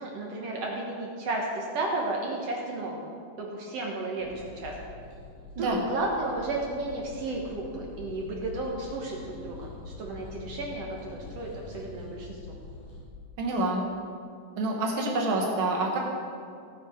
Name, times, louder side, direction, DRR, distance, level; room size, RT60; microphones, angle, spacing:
voice 1, 0.0-3.1 3.4-4.8 5.6-12.4, right 2 dB, 60° right, -1 dB, 1.7 m, -33 dB
sound 1, 4.2-13.0, left 3 dB, 80° left, 5.2 m, -45 dB
voice 2, 13.4-13.8 14.6-16.0, right 2 dB, 85° right, -1 dB, 1.1 m, -27 dB
17.0 x 6.0 x 4.9 m, 2.3 s
omnidirectional pair, 4.0 m